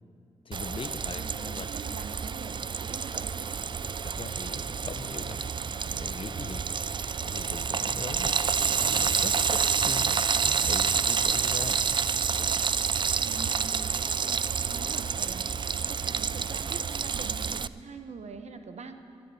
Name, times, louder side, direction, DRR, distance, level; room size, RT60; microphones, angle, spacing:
voice 1, 0.4-1.7 1.9-2.1 3.8-6.7 7.2-11.8, left 4 dB, 45° left, 11 dB, 0.8 m, -41 dB
Frying (food), 0.5-17.7, right 6 dB, 40° right, 0.4 m, -28 dB
voice 2, 1.2-3.5 13.2-13.9 14.2-18.9, right 4 dB, 65° right, 8 dB, 1.1 m, -44 dB
10.5 x 10.5 x 8.3 m, 2.6 s
supercardioid pair, 45°, 12 cm